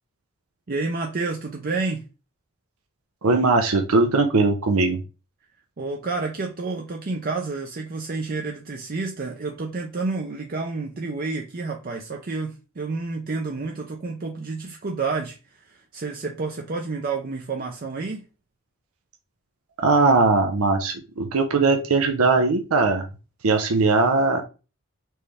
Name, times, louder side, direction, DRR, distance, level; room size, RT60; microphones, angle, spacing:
voice 1, 0.7-2.0 5.8-18.2, right 3 dB, 45° right, 0.5 m, -29 dB
voice 2, 3.2-5.0 19.8-23.0 23.4-24.4, right 3 dB, 90° right, 0.7 m, -20 dB
4.4 x 3.2 x 3.4 m
head